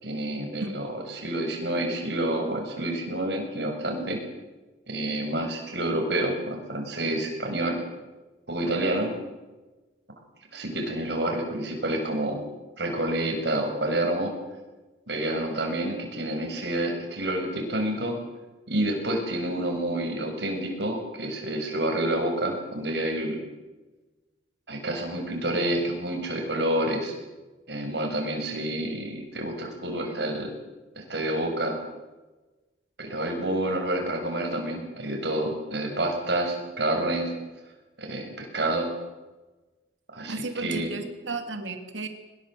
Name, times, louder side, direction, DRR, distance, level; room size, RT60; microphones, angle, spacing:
voice 1, 0.0-4.2 4.9-7.8 8.5-9.1 10.5-12.4 12.8-14.3 15.1-18.2 18.7-23.4 24.7-27.1 27.7-30.5 31.0-31.8 33.0-37.3 38.0-38.9 40.1-40.9, right 1 dB, 60° right, 2 dB, 7.1 m, -28 dB
voice 2, 40.2-42.1, right 3 dB, 80° right, 6 dB, 3.1 m, -34 dB
24.0 x 21.0 x 7.9 m, 1.2 s
head